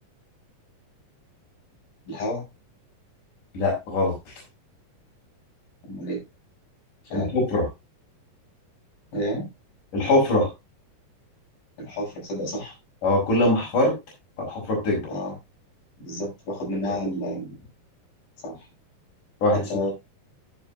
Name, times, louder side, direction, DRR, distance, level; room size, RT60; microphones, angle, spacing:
voice 1, 2.1-2.4 5.9-6.2 7.0-7.3 9.1-9.5 11.8-12.8 15.1-15.4 16.0-17.6 18.4-18.7 19.5-19.9, equal, 90° left, -2 dB, 9.9 m, -30 dB
voice 2, 3.5-4.1 7.1-7.6 9.9-10.5 13.0-14.0 14.4-15.0 19.4-19.6, left 2 dB, 65° left, -2 dB, 6.8 m, -22 dB
13.5 x 8.9 x 2.7 m, 0.23 s
omnidirectional pair, 3.9 m